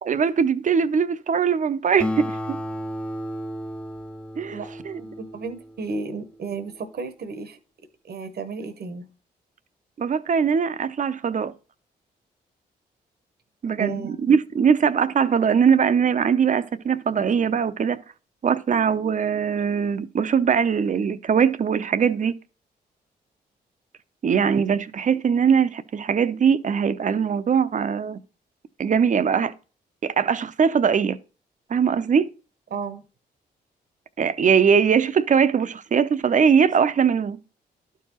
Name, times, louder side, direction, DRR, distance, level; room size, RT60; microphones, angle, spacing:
voice 1, 0.0-2.6 4.4-4.6 4.8-5.0 10.0-11.5 13.6-18.0 18.4-22.3 24.2-28.2 28.8-29.5 30.0-31.2 31.7-32.3 34.2-37.4, right 6 dB, 45° right, 0.6 m, -21 dB
Acoustic guitar, 2.0-6.8, equal, 5° left, 0.6 m, -33 dB
voice 2, 4.5-7.6 8.1-9.1 13.8-14.2 32.7-33.0, right 5 dB, 60° right, 0.9 m, -33 dB
11.5 x 4.7 x 3.0 m
supercardioid pair, 50°, 18 cm